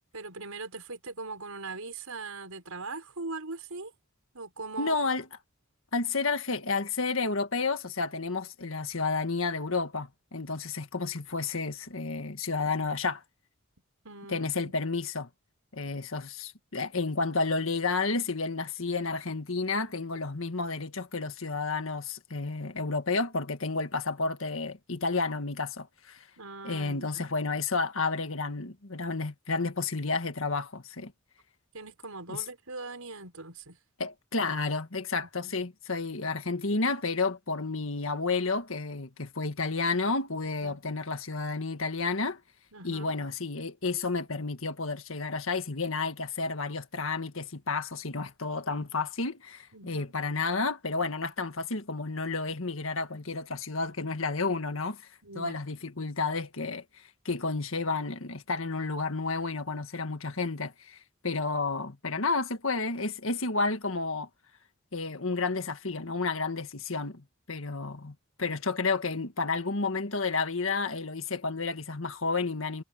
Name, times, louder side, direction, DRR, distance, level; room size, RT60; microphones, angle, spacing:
voice 1, 0.1-3.9 4.3-5.0 14.0-14.7 26.4-27.2 31.7-33.8 35.4-35.5 40.6-40.9 42.7-43.1 49.7-50.1 55.2-55.6, right 3 dB, 85° right, 5.3 m, -41 dB
voice 2, 4.8-5.3 5.9-13.2 14.3-15.3 15.7-26.3 26.6-31.1 32.3-32.4 34.0-42.4 42.8-55.1 55.4-56.8 57.3-61.0 61.2-64.3 64.9-72.8, left 3 dB, 65° left, 1.8 m, -31 dB
head